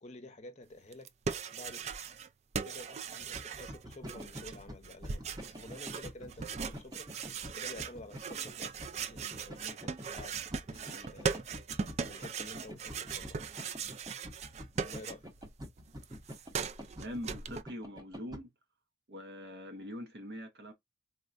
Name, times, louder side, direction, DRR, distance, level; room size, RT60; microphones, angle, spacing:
voice 1, 0.0-1.1 1.5-1.9 2.6-7.1 7.5-11.5 12.1-13.4 14.8-15.3, left 1 dB, 40° left, 0.6 m, -50 dB
sound 1, 0.9-2.3 2.5-15.5 15.8-17.6, right 6 dB, 40° right, 0.3 m, -39 dB
sound 2, 3.2-18.4, equal, 20° right, 0.8 m, -47 dB
voice 2, 17.0-18.5 19.1-20.7, equal, 65° right, 0.7 m, -43 dB
4.2 x 2.2 x 2.4 m
head